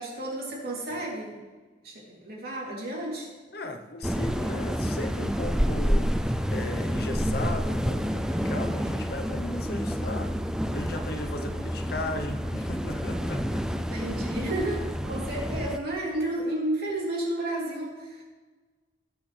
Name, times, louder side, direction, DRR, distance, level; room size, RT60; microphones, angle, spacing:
voice 1, 0.0-1.4 1.8-3.3 13.9-18.2, right 1 dB, 55° right, -4 dB, 3.3 m, -32 dB
voice 2, 3.5-6.1 6.5-10.3 10.7-13.9, left 1 dB, 55° left, 5 dB, 1.0 m, -36 dB
sound 1, 4.0-15.8, equal, 5° right, 0.4 m, -29 dB
20.0 x 7.0 x 3.5 m, 1.3 s
head